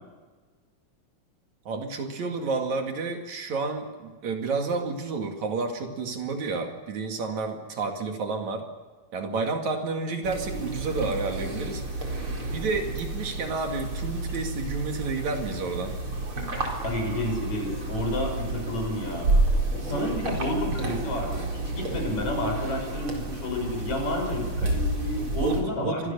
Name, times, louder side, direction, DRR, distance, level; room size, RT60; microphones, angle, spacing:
voice 1, 1.7-8.7 9.1-11.8 12.5-16.0 25.4-26.1, right 4 dB, 60° right, 4 dB, 3.4 m, -30 dB
sound 1, 10.2-25.6, right 2 dB, 40° right, 4.9 m, -30 dB
voice 2, 16.8-19.3 19.8-26.1, left 1 dB, 60° left, 2 dB, 7.3 m, -30 dB
30.0 x 24.5 x 6.9 m, 1.4 s
omnidirectional pair, 3.7 m